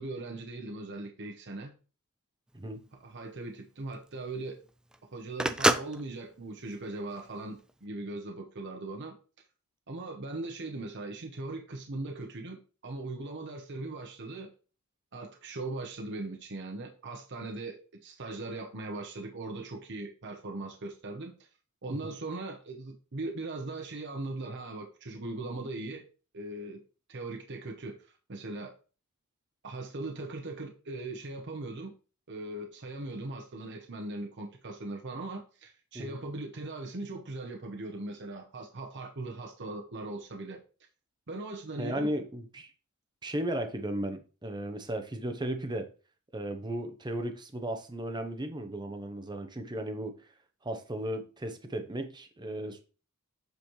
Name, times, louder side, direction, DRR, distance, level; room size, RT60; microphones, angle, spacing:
voice 1, 0.0-1.7 3.0-4.6 5.1-9.2 9.9-14.5 15.1-21.4 21.8-26.0 26.3-26.8 27.1-28.7 29.6-31.9 32.3-40.6 41.3-42.1, right 2 dB, 55° right, 0.9 m, -39 dB
Telephone, 2.5-7.7, right 1 dB, 5° right, 0.3 m, -31 dB
voice 2, 41.8-42.7 43.2-45.9 46.3-50.2 50.6-52.8, right 1 dB, 20° right, 0.8 m, -35 dB
7.9 x 5.1 x 3.1 m
head